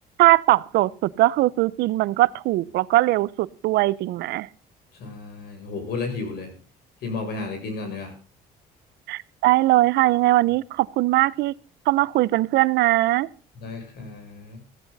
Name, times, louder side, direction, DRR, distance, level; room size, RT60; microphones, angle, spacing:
voice 1, 0.2-4.5 9.1-11.6 11.9-13.3, right 17 dB, 80° right, 20 dB, 0.7 m, -20 dB
voice 2, 5.0-6.5 7.0-8.1 13.6-14.6, left 3 dB, 70° left, 5 dB, 7.1 m, -32 dB
15.5 x 14.0 x 4.1 m, 0.36 s
cardioid pair, 110°, 17 cm